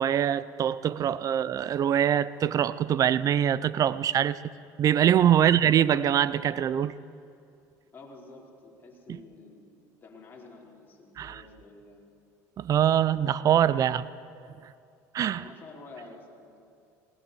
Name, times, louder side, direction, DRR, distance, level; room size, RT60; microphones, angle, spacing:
voice 1, 0.0-4.4 4.8-6.9 9.1-9.2 11.2-11.4 12.6-14.1 15.1-15.4, right 10 dB, 45° right, 0.7 m, -23 dB
voice 2, 7.9-9.7 10.0-12.0 13.5-13.6 15.4-16.6, left 3 dB, 25° left, 4.7 m, -49 dB
19.5 x 19.0 x 7.1 m
supercardioid pair, 90°, 8 cm